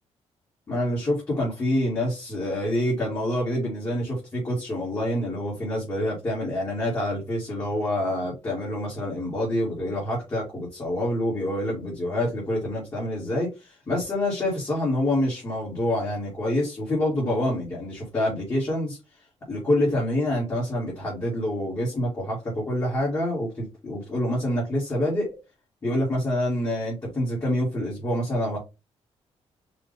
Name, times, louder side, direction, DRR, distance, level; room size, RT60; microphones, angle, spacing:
voice 1, 0.7-19.0 19.5-25.3 25.8-28.6, left 1 dB, 25° left, 2.1 m, -27 dB
4.9 x 2.7 x 3.5 m
cardioid pair, 135°, 12 cm